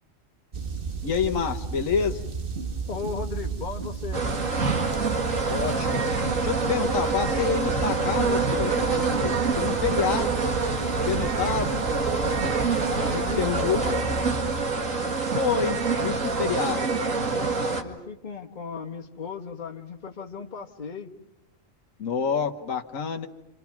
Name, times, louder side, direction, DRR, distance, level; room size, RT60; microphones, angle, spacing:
sound 1, 0.5-14.6, right 5 dB, 45° right, 1.4 m, -34 dB
voice 1, 1.0-2.3 5.5-6.0 6.4-10.4 11.0-11.8 13.1-14.0 15.3-16.8 22.0-23.3, left 7 dB, 80° left, 4 dB, 1.7 m, -28 dB
voice 2, 2.9-4.2 12.9-14.1 16.3-21.1, left 6 dB, 35° left, 3 dB, 1.6 m, -36 dB
sound 2, 4.1-17.8, right 4 dB, 75° right, 2.5 m, -26 dB
29.5 x 27.5 x 5.9 m, 0.89 s
omnidirectional pair, 1.4 m